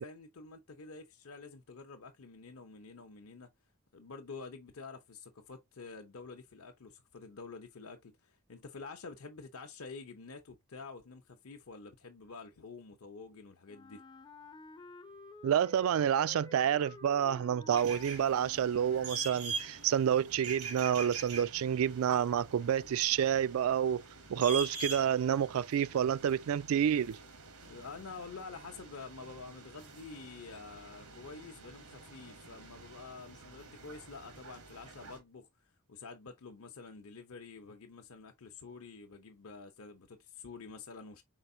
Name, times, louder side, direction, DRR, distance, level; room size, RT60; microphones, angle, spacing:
voice 1, 0.0-3.5 3.9-14.0 27.6-35.5 35.9-41.2, left 4 dB, 75° left, 0.7 m, -48 dB
Wind instrument woodwind instrument, 13.7-19.5, left 3 dB, 20° left, 0.4 m, -52 dB
voice 2, 15.4-24.0 24.3-27.2, right 9 dB, 70° right, 0.3 m, -29 dB
sound 1, 17.7-35.2, right 4 dB, 90° right, 1.4 m, -45 dB
4.6 x 4.3 x 2.6 m
head